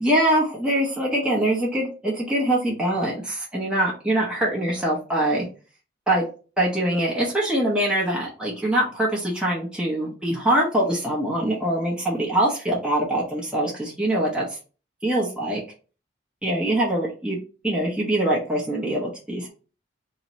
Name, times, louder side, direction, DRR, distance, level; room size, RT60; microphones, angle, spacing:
voice 1, 0.0-5.5 6.1-6.2 6.6-14.4 15.0-15.6 16.4-17.4 17.6-19.5, right 1 dB, 5° right, -5 dB, 0.8 m, -23 dB
3.0 x 2.8 x 4.0 m, 0.36 s
head